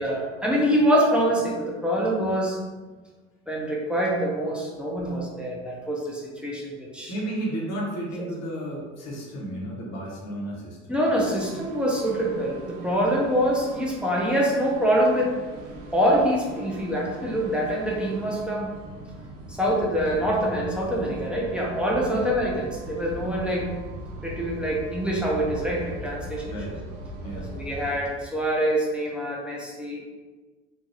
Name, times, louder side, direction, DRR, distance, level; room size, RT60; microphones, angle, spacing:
voice 1, 0.0-2.6 3.5-7.1 10.9-15.3 15.9-18.7 19.5-23.7 24.2-26.4 27.3-30.0, equal, 5° right, -4 dB, 0.7 m, -25 dB
voice 2, 7.1-10.8 22.1-22.3 26.4-26.8 27.2-27.5, right 1 dB, 45° left, -3 dB, 1.0 m, -32 dB
sound 1, 11.2-28.0, right 1 dB, 60° right, 0.7 m, -40 dB
3.2 x 2.2 x 2.8 m, 1.3 s
figure-of-eight pair, 60°, 36 cm